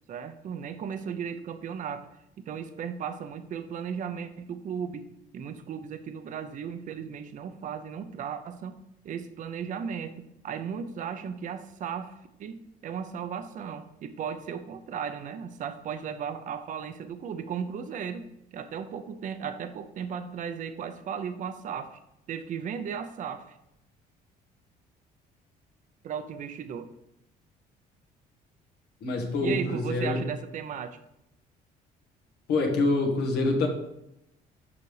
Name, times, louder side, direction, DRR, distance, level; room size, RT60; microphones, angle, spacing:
voice 1, 0.1-2.1 2.4-5.0 5.3-8.8 9.0-12.1 12.4-18.3 18.5-22.0 22.3-23.6 26.0-26.9 29.4-31.0, right 7 dB, 50° right, 9 dB, 0.6 m, -36 dB
voice 2, 29.0-30.2 32.5-33.7, left 3 dB, 80° left, 2 dB, 1.6 m, -26 dB
7.0 x 5.2 x 4.8 m, 0.84 s
cardioid pair, 110°, 17 cm